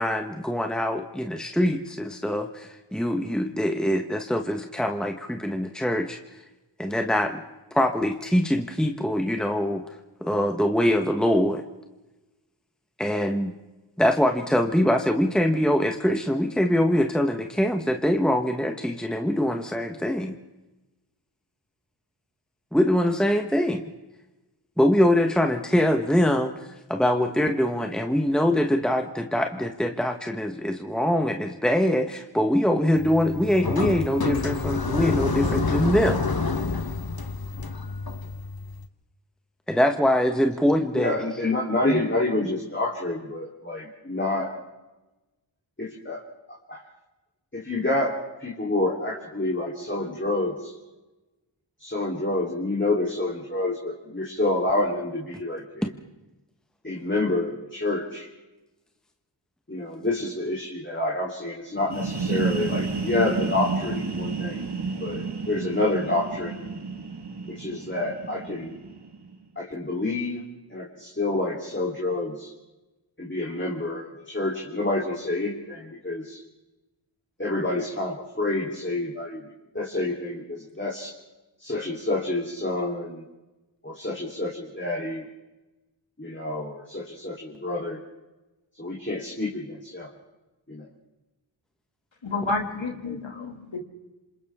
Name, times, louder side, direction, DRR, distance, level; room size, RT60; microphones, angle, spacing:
voice 1, 0.0-6.2 6.8-7.4 7.7-9.8 10.2-11.6 13.0-13.5 14.0-20.4 22.7-23.8 24.8-26.5 26.9-36.2 39.7-41.2 41.9-42.0, equal, ahead, 4 dB, 1.3 m, -23 dB
sound 1, 33.0-38.9, left 4 dB, 50° left, 1.4 m, -28 dB
voice 2, 40.9-44.5 45.8-46.2 46.7-46.8 47.5-50.7 51.8-55.9 56.8-58.3 59.7-64.7 65.0-66.7 67.5-68.8 69.6-70.4 70.7-72.5 73.2-76.4 77.4-81.1 81.6-83.2 83.8-85.3 86.2-88.0 88.8-90.1 90.7-90.9, left 2 dB, 25° left, -4 dB, 3.6 m, -28 dB
sound 2, 61.8-69.4, right 4 dB, 55° right, 1.9 m, -31 dB
voice 3, 92.2-93.8, left 3 dB, 75° left, 2 dB, 2.6 m, -30 dB
27.5 x 27.0 x 3.7 m, 1.1 s
wide cardioid pair, 55°, 46 cm